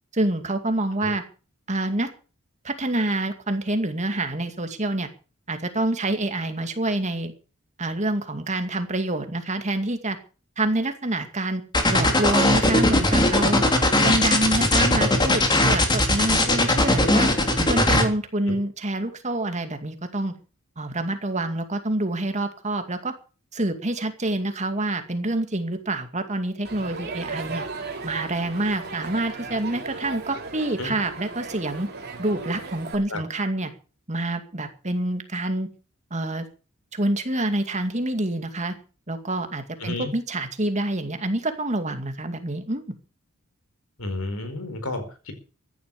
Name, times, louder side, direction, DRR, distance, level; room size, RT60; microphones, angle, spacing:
voice 1, 0.1-1.2 1.7-2.1 2.6-5.1 5.5-7.3 7.8-10.2 10.6-11.6 11.9-13.6 14.0-17.3 17.7-20.3 20.8-23.1 23.5-27.6 28.0-31.9 32.2-33.7 34.1-35.7 36.1-36.5 36.9-38.7 39.1-42.8, right 2 dB, 35° right, 7 dB, 2.3 m, -27 dB
sound 1, 11.7-18.0, left 1 dB, 20° left, 3.0 m, -19 dB
Crowd, 26.6-33.0, right 3 dB, 50° right, 3.7 m, -36 dB
voice 2, 44.0-45.3, left 2 dB, 85° left, 10 dB, 4.7 m, -31 dB
15.0 x 11.0 x 6.8 m, 0.37 s
head